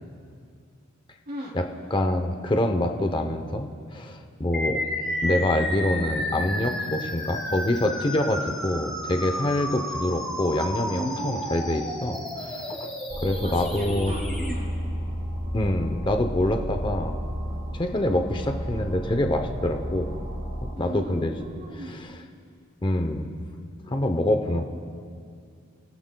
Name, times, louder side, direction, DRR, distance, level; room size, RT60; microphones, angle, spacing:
voice 1, 1.9-4.8 5.2-12.9 13.2-14.1 15.5-17.1 17.7-20.1 20.6-21.3 21.7-22.2 22.8-23.4 23.9-24.6, left 1 dB, 25° left, 5 dB, 0.7 m, -26 dB
sound 1, 4.5-14.5, left 1 dB, 5° left, 2.2 m, -32 dB
voice 2, 10.9-12.0 13.4-14.7 20.7-21.9, right 1 dB, 50° right, -5 dB, 3.2 m, -38 dB
sound 2, 13.1-20.7, equal, 30° right, 3.3 m, -32 dB
28.5 x 16.5 x 2.3 m, 2.3 s
head